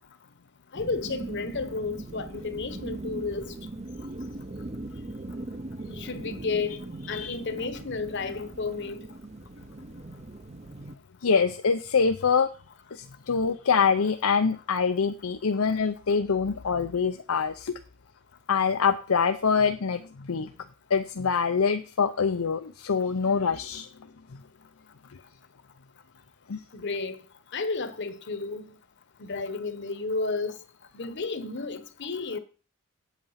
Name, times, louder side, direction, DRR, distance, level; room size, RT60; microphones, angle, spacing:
voice 1, 0.7-3.5 6.0-6.8 7.1-9.0 26.7-27.2 27.5-28.7 29.2-30.6 30.9-32.4, left 4 dB, 55° left, 1.1 m, -32 dB
sound 1, 0.7-11.0, right 2 dB, 30° right, 0.6 m, -40 dB
voice 2, 11.2-12.5 12.9-17.8 18.5-20.5 20.9-23.9 26.5-26.6, left 5 dB, 80° left, 0.6 m, -25 dB
8.5 x 8.2 x 5.8 m
head